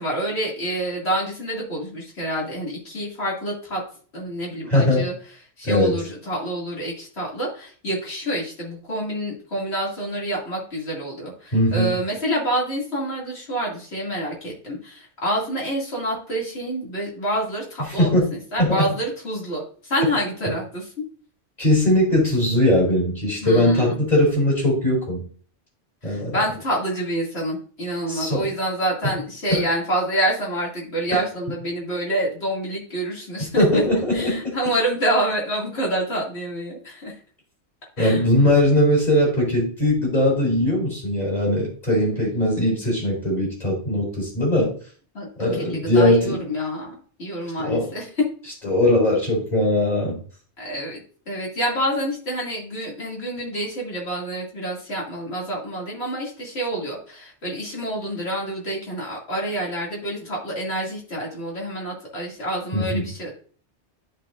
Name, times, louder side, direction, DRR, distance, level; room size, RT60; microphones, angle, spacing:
voice 1, 0.0-3.8 4.1-5.1 5.6-20.9 23.4-24.0 26.0-33.8 34.1-37.1 38.0-38.2 45.1-48.1 50.6-51.0 51.3-63.3, right 1 dB, 65° left, -3 dB, 2.8 m, -27 dB
voice 2, 4.7-5.1 5.6-6.0 11.5-11.9 18.0-18.3 18.6-18.9 21.6-25.2 26.0-26.4 28.1-28.5 33.6-34.5 38.0-44.7 45.4-46.4 47.6-47.9 48.6-50.2 62.7-63.0, left 1 dB, 35° left, -4 dB, 3.3 m, -20 dB
12.5 x 4.4 x 2.5 m, 0.43 s
omnidirectional pair, 1.2 m